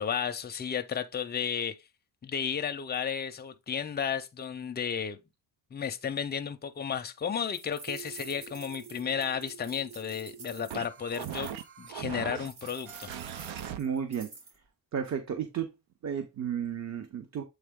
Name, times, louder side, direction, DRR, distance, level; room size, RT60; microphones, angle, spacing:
voice 1, 0.0-1.8 2.2-5.2 5.7-11.5 11.8-13.1, left 7 dB, 25° left, 0.5 m, -33 dB
sound 1, 7.5-11.7 12.5-14.6, right 3 dB, 60° right, 3.4 m, -49 dB
sound 2, 7.9-13.8, right 9 dB, 90° right, 0.7 m, -41 dB
voice 2, 13.8-14.3 14.9-15.7 16.0-17.4, right 8 dB, 40° right, 0.8 m, -33 dB
7.8 x 3.4 x 3.6 m
cardioid pair, 155°, 44 cm